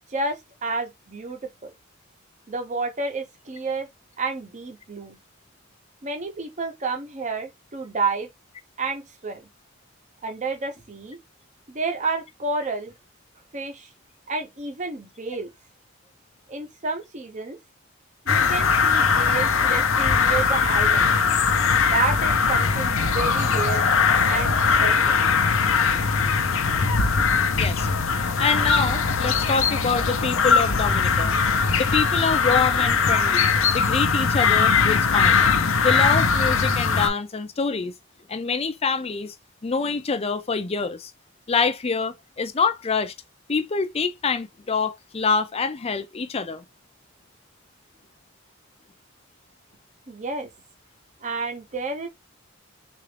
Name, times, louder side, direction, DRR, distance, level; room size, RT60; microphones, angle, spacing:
voice 1, 0.1-1.7 2.5-3.9 4.2-5.2 6.0-8.3 8.8-9.5 10.2-11.2 11.7-12.9 13.5-13.9 14.3-15.5 16.5-17.6 18.2-21.1 21.9-23.8 24.2-24.5 24.8-25.2 50.1-50.5 51.2-52.1, right 3 dB, 35° right, 0.8 m, -30 dB
sound 1, 18.3-37.1, left 5 dB, 70° left, 0.7 m, -20 dB
voice 2, 27.5-27.9 28.4-31.4 31.8-35.4 35.8-37.9 38.3-39.3 39.6-41.1 41.5-43.1 43.5-46.6, left 5 dB, 30° left, 0.5 m, -26 dB
3.8 x 2.5 x 3.3 m
head